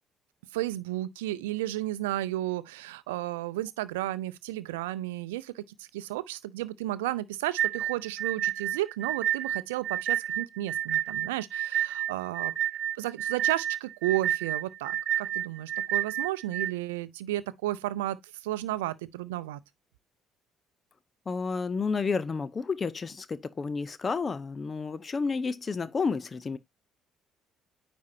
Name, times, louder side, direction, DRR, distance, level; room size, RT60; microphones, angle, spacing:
voice 1, 0.5-12.5 13.0-19.6, right 15 dB, 80° right, 0.5 m, -33 dB
sound 1, 7.6-16.7, right 11 dB, 50° right, 0.9 m, -30 dB
voice 2, 21.3-26.6, left 4 dB, 35° left, 0.7 m, -31 dB
9.5 x 4.3 x 2.7 m
hypercardioid pair, 50°, 0 cm